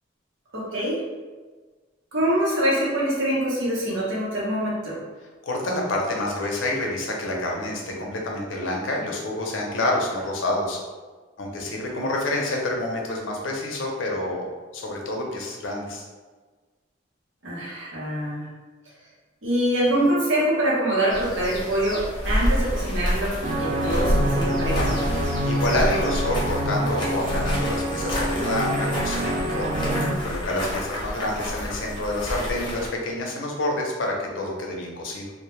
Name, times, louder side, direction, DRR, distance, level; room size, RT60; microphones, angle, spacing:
voice 1, 0.5-1.0 2.1-5.0 17.4-18.5 19.4-25.0, right 1 dB, 85° right, -6 dB, 0.8 m, -24 dB
voice 2, 5.4-10.8 11.4-14.5 14.7-16.0 25.1-29.8 30.2-35.3, left 1 dB, 85° left, -1 dB, 0.5 m, -28 dB
sound 1, 21.1-32.9, equal, 25° left, 0.6 m, -28 dB
sound 2, 23.4-30.1, right 1 dB, 35° right, 0.3 m, -26 dB
2.1 x 2.1 x 3.0 m, 1.4 s
head